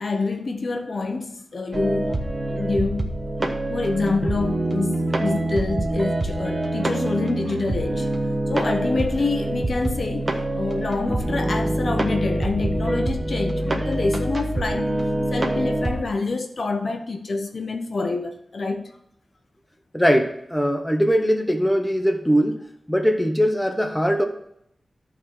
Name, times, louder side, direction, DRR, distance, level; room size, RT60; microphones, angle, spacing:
voice 1, 0.0-3.1 3.7-8.1 8.5-10.3 10.5-15.0 15.3-19.0, left 3 dB, 60° left, 0.9 m, -27 dB
sound 1, 1.7-16.0, right 1 dB, 35° right, 1.1 m, -25 dB
voice 2, 19.9-24.3, equal, 10° left, 1.1 m, -21 dB
12.0 x 4.1 x 6.1 m
wide cardioid pair, 95°, 0 cm